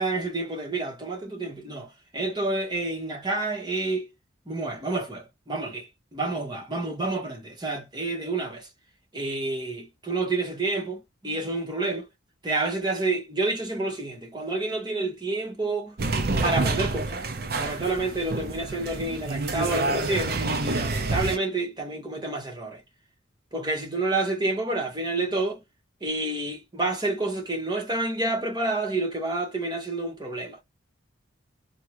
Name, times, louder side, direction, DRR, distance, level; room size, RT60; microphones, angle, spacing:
voice 1, 0.0-4.1 4.5-8.7 9.1-12.1 12.4-16.0 16.4-17.2 17.5-22.8 23.5-25.6 26.0-30.6, right 2 dB, 20° right, 1.1 m, -29 dB
sound 1, 16.0-21.4, right 3 dB, 50° right, 0.6 m, -28 dB
3.6 x 2.3 x 2.9 m
head